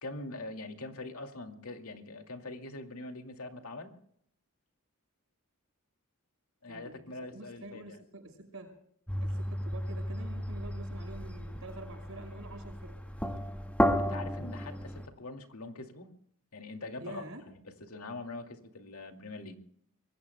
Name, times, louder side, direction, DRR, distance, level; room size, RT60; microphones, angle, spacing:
voice 1, 0.0-3.9 6.6-8.0 14.0-16.1 16.5-19.6, left 2 dB, 85° left, 4 dB, 2.4 m, -43 dB
voice 2, 6.7-8.7 9.2-13.0 16.9-17.4, right 2 dB, 70° right, 6 dB, 5.5 m, -47 dB
sound 1, 9.1-15.1, equal, 5° left, 1.8 m, -33 dB
25.5 x 22.5 x 2.2 m, 0.66 s
head